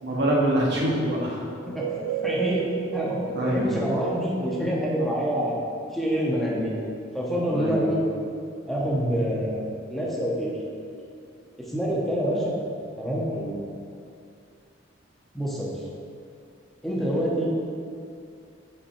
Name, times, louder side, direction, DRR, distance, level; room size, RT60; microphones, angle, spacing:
voice 1, 0.0-1.4 3.4-3.7 7.5-7.8 12.2-12.4 13.3-13.5, right 1 dB, 65° right, -4 dB, 1.2 m, -25 dB
sound 1, 1.6-6.2, right 8 dB, 90° right, 0.3 m, -33 dB
voice 2, 2.2-2.7 2.9-5.6 5.9-6.8 7.1-8.0 8.7-10.5 11.7-12.5 13.0-13.3 15.3-15.7 16.8-17.5, equal, ahead, -5 dB, 0.8 m, -26 dB
5.4 x 4.3 x 4.3 m, 2.3 s
head